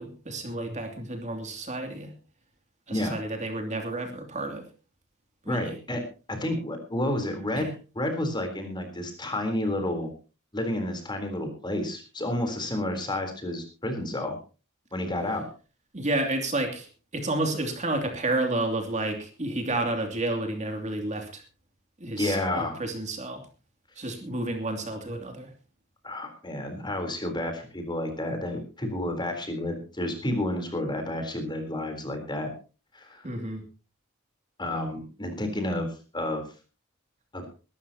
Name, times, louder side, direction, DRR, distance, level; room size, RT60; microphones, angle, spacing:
voice 1, 0.0-2.1 2.9-4.7 5.4-5.8 7.5-7.7 15.9-21.4 22.0-23.5 24.0-25.5 33.2-33.6, right 2 dB, 35° right, 4 dB, 2.8 m, -31 dB
voice 2, 5.5-6.0 6.3-10.1 10.5-14.4 14.9-15.5 22.2-22.8 26.0-32.5 32.9-33.3 34.6-36.4 37.3-37.5, left 1 dB, 20° left, 5 dB, 3.8 m, -30 dB
22.5 x 13.0 x 2.9 m, 0.34 s
head